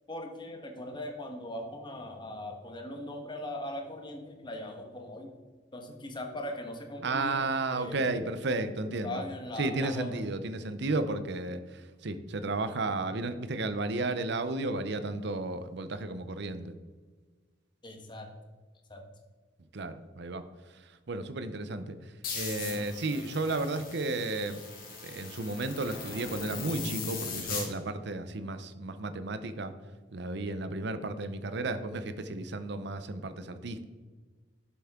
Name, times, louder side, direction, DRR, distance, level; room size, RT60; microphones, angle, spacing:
voice 1, 0.1-5.3 5.7-7.4 7.7-8.1 9.0-10.1 17.8-18.3 18.9-19.0, left 1 dB, 25° left, 3 dB, 1.4 m, -40 dB
voice 2, 7.0-9.2 9.6-16.7 19.7-20.4 21.1-22.0 22.3-24.6 25.0-29.7 30.1-33.8, right 2 dB, 65° right, 11 dB, 0.7 m, -33 dB
sound 1, 22.2-27.7, left 4 dB, 50° left, 2.4 m, -39 dB
11.5 x 7.1 x 3.7 m, 1.4 s
head